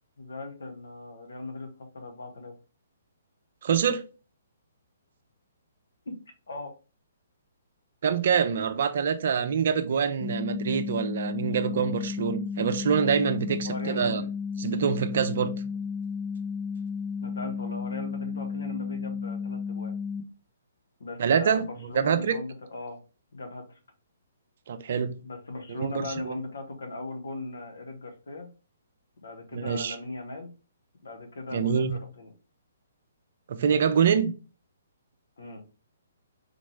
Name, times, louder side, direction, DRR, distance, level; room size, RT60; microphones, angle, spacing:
voice 1, 0.2-2.5 6.1-6.2 6.5-6.7 13.6-14.3 17.2-19.9 21.0-23.0 23.3-23.6 25.2-28.5 29.2-30.5 31.0-32.3 35.4-35.6, left 2 dB, 70° left, 1.2 m, -38 dB
voice 2, 3.6-4.0 8.0-14.2 14.6-15.5 21.2-21.6 21.9-22.4 24.7-25.1 25.7-26.3 29.5-30.0 31.5-31.9 33.5-34.3, right 7 dB, 55° right, 0.5 m, -25 dB
sound 1, 10.2-20.2, left 5 dB, 20° left, 0.7 m, -33 dB
4.3 x 3.1 x 3.2 m
figure-of-eight pair, 130°, 0 cm